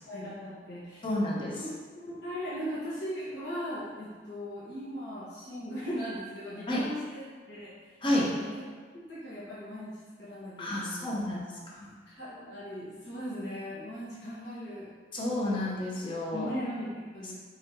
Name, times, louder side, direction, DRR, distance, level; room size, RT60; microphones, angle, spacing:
voice 1, 0.1-1.1 1.5-8.6 8.9-11.1 11.5-11.6 12.1-14.9 16.3-17.4, equal, 70° left, -10 dB, 1.4 m, -39 dB
voice 2, 1.0-1.6 6.7-6.8 8.0-8.3 10.6-11.4 11.7-11.9 15.1-16.5, left 1 dB, 30° left, -4 dB, 0.7 m, -30 dB
4.8 x 3.6 x 3.0 m, 1.5 s
head